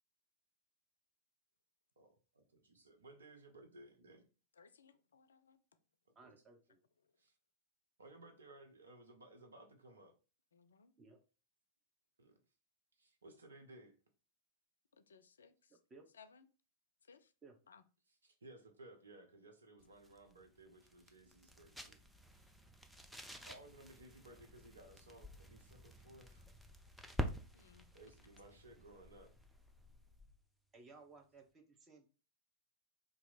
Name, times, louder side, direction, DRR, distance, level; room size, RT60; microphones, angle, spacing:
voice 1, 2.0-4.2 6.2-6.3 7.2-7.3 8.0-10.1 12.2-12.3 13.0-14.0 18.2-22.0 23.5-26.4 27.9-29.3, right 2 dB, 70° right, 0.8 m, -59 dB
voice 2, 4.6-5.6 10.5-10.9 14.9-15.8 16.1-16.5 17.0-17.3 17.7-17.8 19.9-20.0 27.5-28.1 28.5-28.6, left 6 dB, 70° left, 0.3 m, -64 dB
voice 3, 6.1-6.8 11.0-11.2 15.7-16.0 17.4-17.6 30.7-32.1, right 3 dB, 25° right, 0.8 m, -60 dB
sound 1, 19.8-30.4, equal, ahead, 0.5 m, -49 dB
2.8 x 2.5 x 4.1 m
figure-of-eight pair, 90°, 0 cm